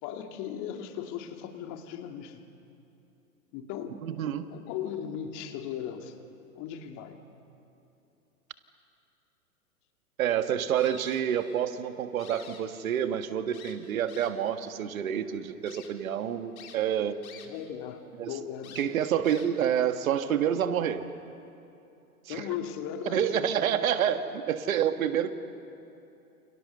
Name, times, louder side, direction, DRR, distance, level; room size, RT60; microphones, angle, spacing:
voice 1, 0.0-2.4 3.5-4.0 4.5-6.2 6.6-7.2 17.5-19.0 22.3-23.3, left 9 dB, 40° left, 5 dB, 2.6 m, -37 dB
voice 2, 4.0-4.5 10.2-17.1 18.2-18.4 18.7-21.1 22.3-22.6 23.0-25.4, right 9 dB, 65° right, 9 dB, 1.7 m, -28 dB
sound 1, 10.8-11.7 12.0-13.1 13.5-14.5 15.1-15.2 15.7-15.9 16.6-17.7 18.0-18.1 18.6-19.7, left 7 dB, 65° left, 3.6 m, -50 dB
29.0 x 29.0 x 6.9 m, 2.8 s
hypercardioid pair, 105°, 45 cm